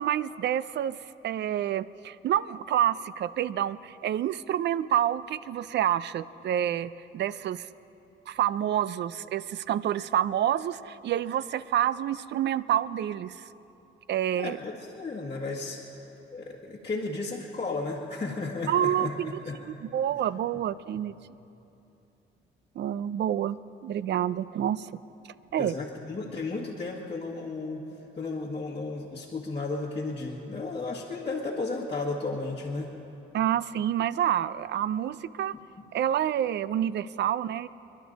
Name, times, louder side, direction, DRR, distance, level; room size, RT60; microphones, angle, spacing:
voice 1, 0.0-7.7 8.3-13.4 14.1-14.6 18.7-19.3 19.7-21.1 22.8-24.9 25.5-25.7 33.3-35.5 35.9-37.7, right 10 dB, 60° right, 17 dB, 0.5 m, -28 dB
voice 2, 14.4-16.0 16.3-19.6 25.6-32.9, left 3 dB, 30° left, -4 dB, 1.6 m, -34 dB
27.5 x 11.5 x 4.1 m, 2.9 s
cardioid pair, 90°, 20 cm